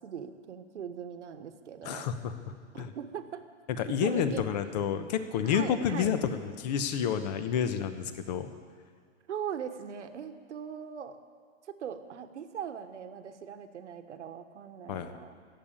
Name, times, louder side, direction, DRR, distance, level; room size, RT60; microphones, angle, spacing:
voice 1, 0.0-2.1 2.7-3.4 3.9-4.4 5.4-6.1 9.3-11.2 11.6-15.3, right 8 dB, 75° right, 8 dB, 1.3 m, -40 dB
voice 2, 1.8-2.3 2.8-2.9 3.8-8.5 14.9-15.1, left 8 dB, 35° left, 10 dB, 1.0 m, -29 dB
16.0 x 7.6 x 8.9 m, 2.1 s
hypercardioid pair, 145°, 35 cm